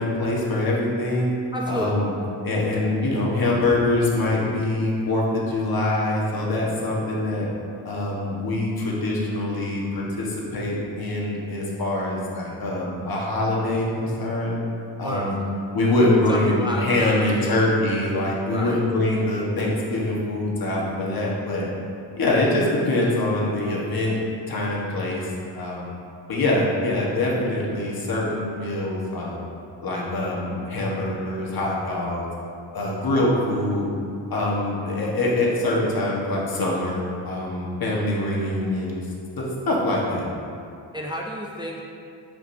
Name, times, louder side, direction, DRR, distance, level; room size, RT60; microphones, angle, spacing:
voice 1, 0.0-1.3 1.7-2.1 2.4-7.5 7.8-14.5 15.0-15.4 15.7-21.7 22.2-24.2 24.5-25.9 26.3-29.4 29.8-32.2 32.7-33.9 34.3-39.0 39.4-40.3, left 2 dB, 55° left, -4 dB, 1.5 m, -24 dB
voice 2, 1.5-2.0 15.0-15.5 16.3-17.7 18.5-18.8 40.9-41.9, equal, 10° right, -2 dB, 0.4 m, -31 dB
9.3 x 5.2 x 2.7 m, 2.5 s
cardioid pair, 115°, 44 cm